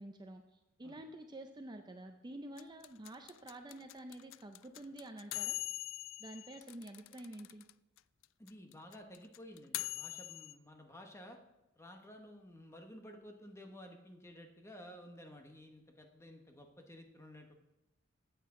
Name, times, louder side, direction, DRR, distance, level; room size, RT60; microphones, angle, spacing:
voice 1, 0.0-5.6 6.2-7.7, right 1 dB, 20° right, 5 dB, 0.5 m, -49 dB
sound 1, 2.6-7.7 8.0-8.1 8.2-10.5, left 15 dB, 70° left, 0.3 m, -42 dB
voice 2, 8.4-11.4 11.8-17.5, equal, 15° left, 4 dB, 1.1 m, -53 dB
14.0 x 8.3 x 3.8 m, 0.95 s
head